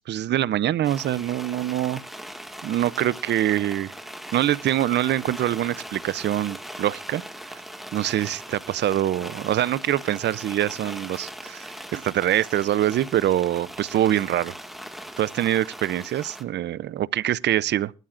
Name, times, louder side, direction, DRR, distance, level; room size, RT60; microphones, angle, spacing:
voice 1, 0.0-2.0 2.6-3.9 4.3-7.2 7.5-7.6 7.9-14.5 15.2-17.9, right 12 dB, 60° right, 0.5 m, -24 dB
sound 1, 0.8-16.4, equal, ahead, 1.8 m, -40 dB
21.0 x 13.0 x 2.5 m
cardioid pair, 90°, 20 cm